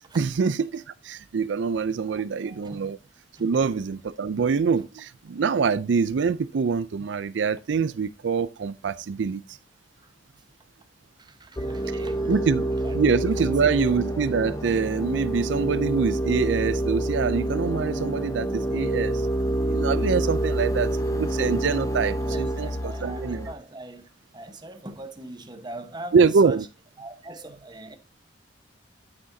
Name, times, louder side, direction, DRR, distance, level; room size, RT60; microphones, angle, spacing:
voice 1, 0.2-3.0 3.4-9.6 12.3-12.7 12.9-19.3 19.7-23.5 26.1-26.6, right 5 dB, 75° right, 0.4 m, -25 dB
voice 2, 2.0-2.9 3.4-3.6 10.0-10.1 11.2-12.4 12.6-13.0 13.3-13.7 22.2-26.2 26.4-26.7 27.0-28.0, right 2 dB, 25° right, 1.1 m, -42 dB
sound 1, 11.6-23.5, right 1 dB, 20° left, 0.8 m, -27 dB
9.6 x 8.8 x 2.7 m
head